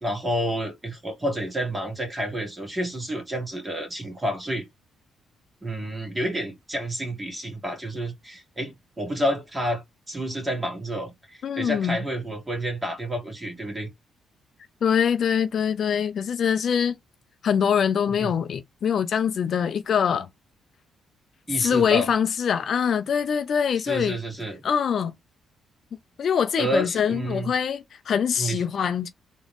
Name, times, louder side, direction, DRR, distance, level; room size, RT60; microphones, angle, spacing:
voice 1, 0.0-4.6 5.6-13.9 18.2-18.3 21.5-22.1 23.9-24.6 26.6-27.5 28.4-28.6, equal, 20° right, 2.1 m, -29 dB
voice 2, 11.4-12.0 14.8-17.0 17.4-20.3 21.6-24.2 24.6-25.1 26.2-29.1, left 7 dB, 55° left, 0.5 m, -24 dB
3.9 x 3.0 x 3.4 m
cardioid pair, 90°, 0 cm